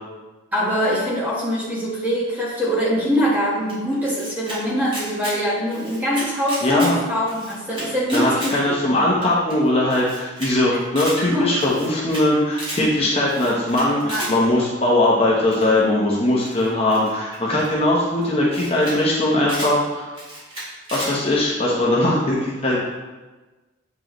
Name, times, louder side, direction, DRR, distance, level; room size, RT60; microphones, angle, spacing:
voice 1, 0.5-8.8 11.3-11.5 12.8-12.9 14.0-14.3 21.6-21.7, equal, 10° right, -6 dB, 1.3 m, -23 dB
Camera, 3.7-4.6 4.9-5.4 5.7-6.9 7.2-8.5 8.9-9.0 9.2-9.3 9.5-9.6 9.9-10.5 10.8-11.2 11.6-12.2 12.5-12.8 13.3-14.3 15.5-15.8 16.4-17.7 18.2-18.3 18.5-19.0 19.2-19.7 20.1-21.1, equal, 25° right, 2.1 m, -33 dB
voice 2, 6.6-7.0 8.1-20.1 20.9-22.8, left 1 dB, 30° left, -5 dB, 0.9 m, -20 dB
7.7 x 4.6 x 3.1 m, 1.2 s
head